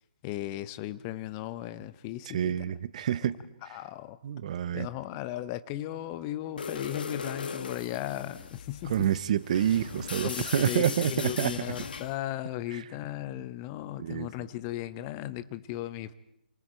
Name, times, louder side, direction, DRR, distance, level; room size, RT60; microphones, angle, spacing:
voice 1, 0.2-2.6 3.6-4.2 4.7-9.1 10.2-16.1, left 14 dB, 25° left, 14 dB, 0.9 m, -36 dB
voice 2, 2.3-3.4 4.2-4.9 8.9-11.5 14.0-14.3, right 9 dB, 45° right, 17 dB, 0.9 m, -28 dB
sound 1, 6.6-12.2, left 5 dB, 65° left, 1.8 m, -39 dB
28.0 x 27.0 x 4.5 m, 0.76 s
figure-of-eight pair, 140°, 5 cm